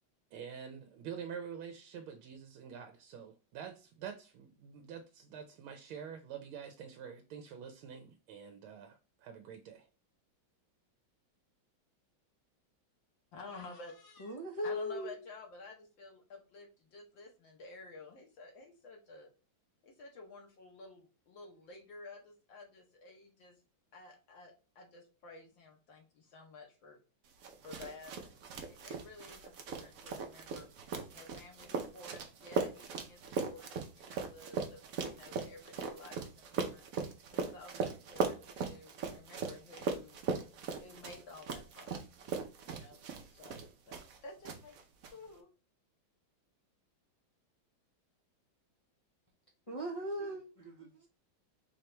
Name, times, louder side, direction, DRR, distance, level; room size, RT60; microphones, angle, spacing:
voice 1, 0.3-9.9, right 7 dB, 85° right, 1.5 m, -47 dB
voice 2, 13.3-14.4 14.6-19.3 19.8-23.6 23.9-27.0 27.6-30.7 31.1-36.8 37.3-40.2 40.8-41.9 42.6-43.0 43.3-43.6 43.9-44.8 45.1-45.5, left 3 dB, 70° left, 1.7 m, -52 dB
voice 3, 14.2-15.2 49.7-51.1, equal, 45° left, 0.4 m, -39 dB
sound 1, 27.4-44.2 44.4-45.1, right 5 dB, 60° right, 0.9 m, -39 dB
4.6 x 3.0 x 3.2 m
omnidirectional pair, 2.2 m